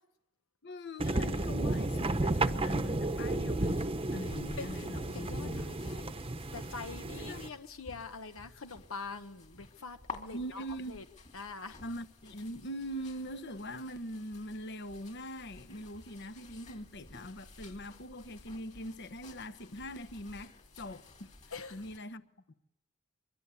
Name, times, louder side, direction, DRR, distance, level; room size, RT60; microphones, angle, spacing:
voice 1, 0.6-5.7 7.3-7.4 10.3-11.0 11.8-21.3 21.7-22.5, equal, 55° left, 1.1 m, -42 dB
sound 1, 1.0-7.5, right 2 dB, 25° right, 0.9 m, -33 dB
sound 2, 3.7-22.0, left 3 dB, 35° left, 2.8 m, -53 dB
voice 2, 5.1-6.1 6.5-11.0 11.3-11.8 21.5-21.8, left 4 dB, 90° left, 1.2 m, -44 dB
24.0 x 23.5 x 8.4 m
head